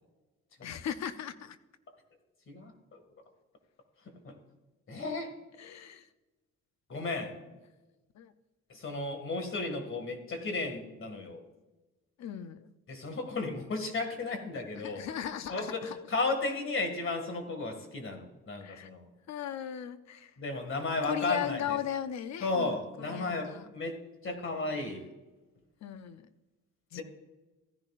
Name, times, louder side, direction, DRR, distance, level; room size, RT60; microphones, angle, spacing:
voice 1, 0.6-1.6 5.6-6.1 8.2-8.3 12.2-12.7 14.8-16.0 18.6-18.9 19.3-20.3 21.0-23.7 24.6-25.1 25.8-26.3 26.9-27.0, left 9 dB, 65° left, 12 dB, 0.7 m, -38 dB
voice 2, 2.5-3.0 4.2-4.4 4.9-5.3 6.9-7.3 8.7-11.4 12.9-15.0 15.5-19.1 20.4-21.8 22.4-24.0 24.2-25.1 27.0-27.1, left 3 dB, 45° left, 6 dB, 2.1 m, -34 dB
15.5 x 10.5 x 2.5 m, 1.1 s
cardioid pair, 90°, 30 cm